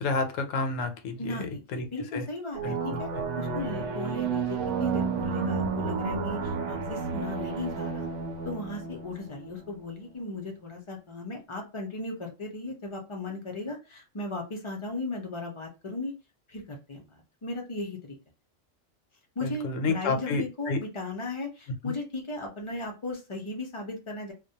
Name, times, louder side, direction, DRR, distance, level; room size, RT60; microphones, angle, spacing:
voice 1, 0.0-1.9 2.1-2.2 2.6-3.2 19.4-20.8 21.8-22.0, left 3 dB, 85° left, 0.9 m, -30 dB
voice 2, 1.2-3.1 3.3-8.1 8.4-16.1 16.5-18.2 19.4-24.3, left 2 dB, 50° left, 0.3 m, -36 dB
sound 1, 2.5-9.9, right 5 dB, 70° right, 0.8 m, -31 dB
2.2 x 2.1 x 2.7 m
omnidirectional pair, 1.3 m